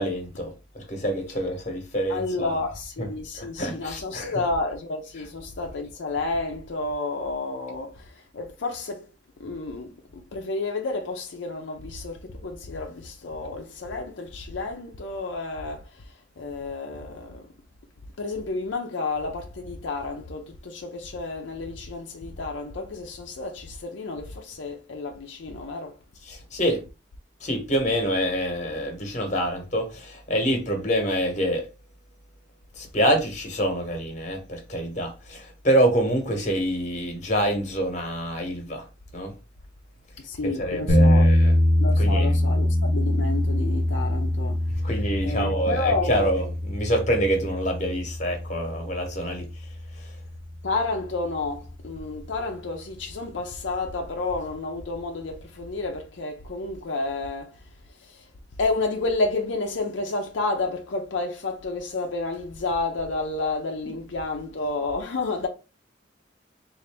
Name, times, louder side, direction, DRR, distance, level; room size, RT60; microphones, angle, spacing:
voice 1, 0.0-2.6 3.0-3.1 3.3-4.3 26.3-26.8 27.4-31.7 32.8-38.9 39.1-39.3 40.4-41.5 42.0-42.3 44.8-49.5 50.0-50.1, equal, 40° left, 1.0 m, -26 dB
voice 2, 2.1-9.1 9.4-17.5 18.2-26.0 40.2-41.5 41.8-44.9 45.2-46.3 50.6-57.6 57.9-58.3 58.6-65.5, left 3 dB, 80° left, 0.6 m, -30 dB
sound 1, 40.9-50.9, left 1 dB, 85° right, 1.0 m, -24 dB
3.9 x 2.5 x 3.3 m
head